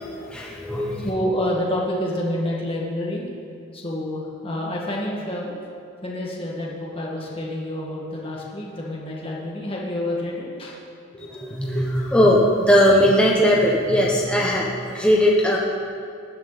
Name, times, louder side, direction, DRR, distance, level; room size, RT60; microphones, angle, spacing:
voice 1, 0.0-1.1 11.6-15.6, equal, 5° left, -4 dB, 1.2 m, -19 dB
voice 2, 1.0-3.3 3.7-5.6 6.0-10.8 11.1-12.3, left 1 dB, 30° left, -4 dB, 2.1 m, -28 dB
19.0 x 11.5 x 4.3 m, 2.6 s
head